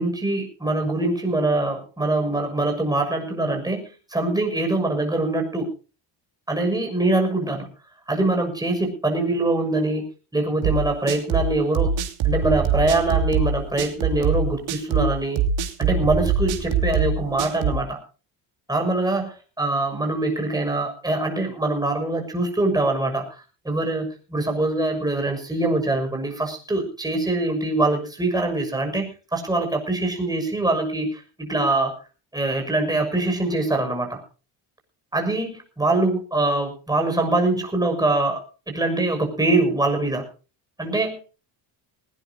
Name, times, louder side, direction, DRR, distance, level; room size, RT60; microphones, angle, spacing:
voice 1, 0.0-5.7 6.5-7.7 8.1-10.1 10.3-11.9 12.2-15.4 15.8-18.0 18.7-31.9 32.3-34.2 35.1-38.4 38.7-40.2 40.8-41.2, right 2 dB, 10° right, 3 dB, 6.7 m, -23 dB
sound 1, 10.6-17.8, right 6 dB, 90° right, 3.0 m, -23 dB
19.5 x 18.5 x 2.9 m, 0.35 s
cardioid pair, 145°, 44 cm